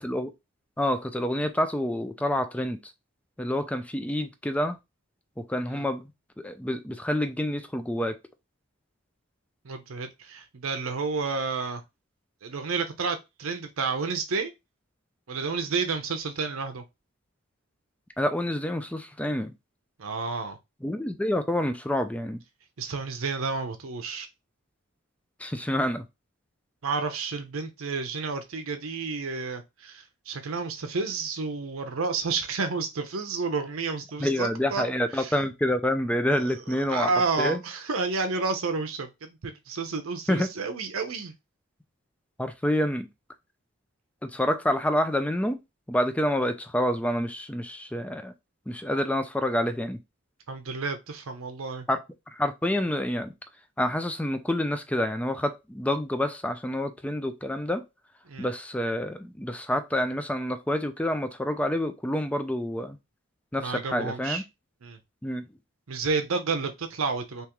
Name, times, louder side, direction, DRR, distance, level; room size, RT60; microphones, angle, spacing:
voice 1, 0.8-2.9 3.4-4.8 5.5-6.1 6.4-8.2 18.2-19.5 20.8-22.4 25.4-26.0 34.2-37.1 37.4-37.6 40.3-40.5 42.4-43.1 44.2-45.6 45.9-48.3 48.7-50.0 51.9-52.0 52.3-53.3 53.8-57.9 58.4-63.0 63.5-64.4 65.2-65.4, left 1 dB, 5° left, 0.4 m, -27 dB
voice 2, 9.6-11.8 12.4-14.5 15.3-16.8 20.0-20.6 22.8-24.3 26.8-34.8 35.2-35.4 36.3-41.3 50.5-51.9 58.3-58.5 63.5-64.4 64.8-65.0 65.9-67.5, right 4 dB, 80° right, 0.6 m, -30 dB
3.5 x 2.9 x 2.9 m
head